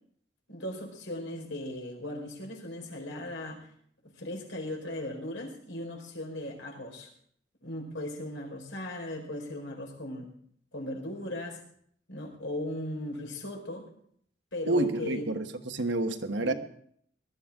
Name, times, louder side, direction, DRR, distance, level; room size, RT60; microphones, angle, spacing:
voice 1, 0.5-3.7 4.0-7.1 7.6-10.3 10.7-11.6 12.1-13.8 14.5-15.3 16.4-16.5, left 1 dB, 75° left, 0 dB, 4.6 m, -37 dB
voice 2, 14.7-16.5, right 2 dB, 65° right, 6 dB, 1.2 m, -29 dB
19.5 x 12.5 x 3.7 m, 0.63 s
head